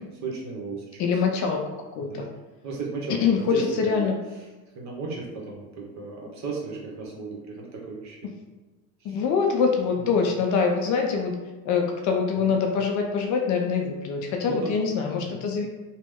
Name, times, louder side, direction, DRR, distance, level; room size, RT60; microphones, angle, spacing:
voice 1, 0.2-1.0 2.0-2.3 2.6-4.1 4.7-8.2 9.0-9.2 9.9-10.2 12.4-12.6 14.4-15.4, right 3 dB, 40° right, -2 dB, 1.0 m, -35 dB
voice 2, 1.0-2.3 3.2-4.1 9.0-11.4 11.6-15.7, left 5 dB, 45° left, 2 dB, 0.5 m, -24 dB
2.9 x 2.1 x 3.5 m, 1.2 s
supercardioid pair, 100°, 42 cm